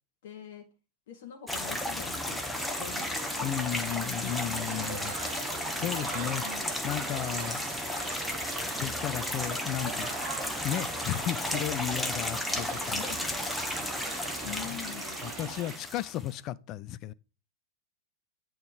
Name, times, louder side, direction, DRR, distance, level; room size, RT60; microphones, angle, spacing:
voice 1, 0.2-0.7 1.1-3.7 3.9-4.6 6.4-6.6 11.5-11.6 12.9-13.3 14.4-15.2, left 9 dB, 55° left, 0.9 m, -44 dB
sound 1, 1.5-16.3, left 1 dB, 5° left, 0.9 m, -34 dB
sound 2, 2.6-15.8, right 12 dB, 50° right, 0.4 m, -44 dB
voice 2, 3.4-5.2 5.8-6.4 6.8-7.6 8.8-10.1 10.6-13.0 14.6-14.8 15.2-17.1, left 12 dB, 35° left, 0.3 m, -34 dB
8.7 x 3.1 x 4.8 m
figure-of-eight pair, 90°, 0 cm